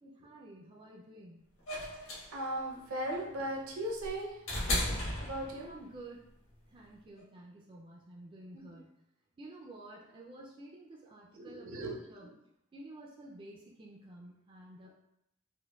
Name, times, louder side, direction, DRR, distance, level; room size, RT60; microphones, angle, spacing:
voice 1, 0.0-1.5 5.6-6.3 6.7-8.9 9.4-12.3 12.7-14.9, right 1 dB, 25° right, -3 dB, 0.3 m, -51 dB
sound 1, 1.7-5.9 7.2-7.3, left 1 dB, 65° left, 1.3 m, -35 dB
voice 2, 2.3-4.4 5.2-5.7 8.5-8.8 11.4-12.3, right 1 dB, 70° right, 0 dB, 0.7 m, -38 dB
4.4 x 2.1 x 2.3 m, 0.80 s
head